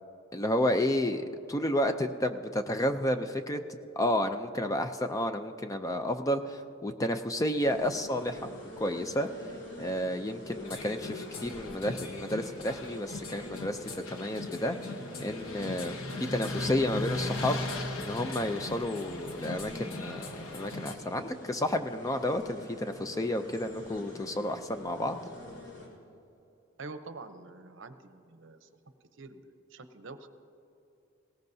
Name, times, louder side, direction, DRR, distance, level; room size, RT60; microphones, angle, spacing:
voice 1, 0.3-3.6 4.0-8.5 8.8-9.3 9.8-14.8 15.2-16.0 16.3-17.6 18.0-25.2, left 1 dB, 15° left, 8 dB, 0.4 m, -31 dB
sound 1, 7.6-25.9, left 2 dB, 60° left, 3.1 m, -45 dB
sound 2, 10.6-21.0, left 2 dB, 90° left, 1.1 m, -39 dB
voice 2, 26.8-28.7 29.0-30.3, right 3 dB, 65° right, 9 dB, 0.7 m, -46 dB
20.0 x 17.5 x 2.7 m, 2.8 s
head